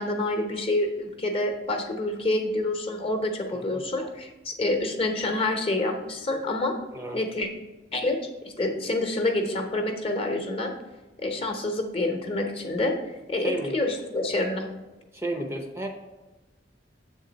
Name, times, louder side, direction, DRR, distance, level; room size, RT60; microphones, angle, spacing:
voice 1, 0.0-6.7 7.1-7.5 7.9-8.2 8.4-10.7 11.2-12.9 13.3-14.7, left 2 dB, 30° left, 3 dB, 0.8 m, -27 dB
voice 2, 3.5-3.8 6.9-7.2 13.4-13.7 15.1-15.9, right 1 dB, 15° right, 3 dB, 0.6 m, -33 dB
7.4 x 3.7 x 5.1 m, 1.1 s
head